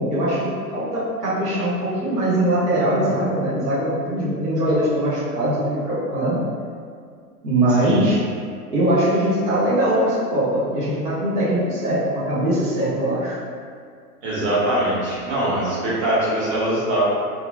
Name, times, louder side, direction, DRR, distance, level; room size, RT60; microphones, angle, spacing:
voice 1, 0.0-6.4 7.4-8.2 8.7-13.4, right 1 dB, 90° right, -9 dB, 0.9 m, -21 dB
voice 2, 7.7-8.1 14.2-17.1, right 1 dB, 45° right, -8 dB, 1.2 m, -22 dB
2.7 x 2.3 x 2.5 m, 2.1 s
hypercardioid pair, 100°, 45 cm